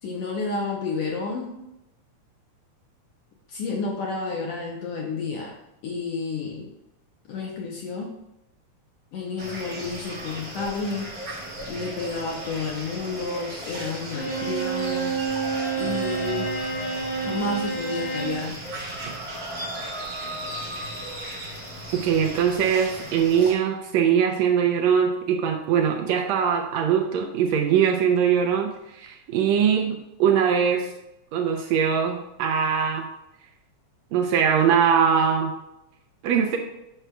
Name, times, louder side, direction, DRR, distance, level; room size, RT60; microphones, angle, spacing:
voice 1, 0.0-1.6 3.5-5.6 5.8-6.7 7.3-8.2 9.1-11.2 11.7-15.2 15.8-16.6 17.2-18.6, left 4 dB, 70° left, -1 dB, 1.5 m, -31 dB
sound 1, 9.4-23.5, right 1 dB, 40° right, 1.4 m, -36 dB
Bowed string instrument, 14.1-18.4, right 5 dB, 50° left, 1.9 m, -28 dB
voice 2, 22.0-30.9 31.3-33.1 34.1-35.5 36.2-36.6, right 7 dB, 75° right, 3 dB, 1.7 m, -22 dB
7.9 x 6.0 x 2.2 m, 0.89 s
omnidirectional pair, 3.4 m